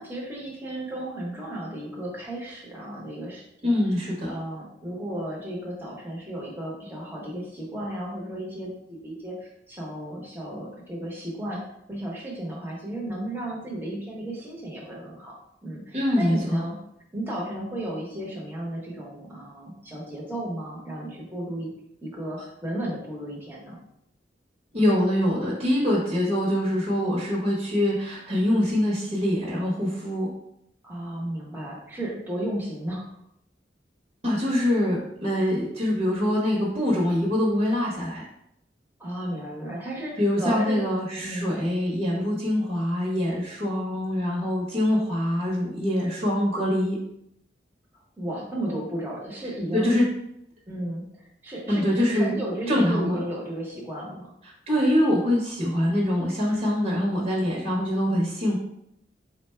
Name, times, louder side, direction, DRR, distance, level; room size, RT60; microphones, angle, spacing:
voice 1, 0.0-3.8 4.3-11.6 11.9-15.3 15.6-16.8 17.1-21.7 22.0-23.8 30.8-33.1 39.0-40.8 41.2-41.6 48.2-49.9 50.7-51.1 51.4-54.3, right 1 dB, 10° right, -4 dB, 1.0 m, -34 dB
voice 2, 3.6-4.3 15.9-16.6 24.7-30.3 34.2-38.2 40.2-46.9 49.7-50.0 51.7-52.3 52.7-53.2 54.7-58.6, left 1 dB, 40° right, -5 dB, 1.0 m, -24 dB
4.1 x 2.2 x 4.3 m, 0.76 s
head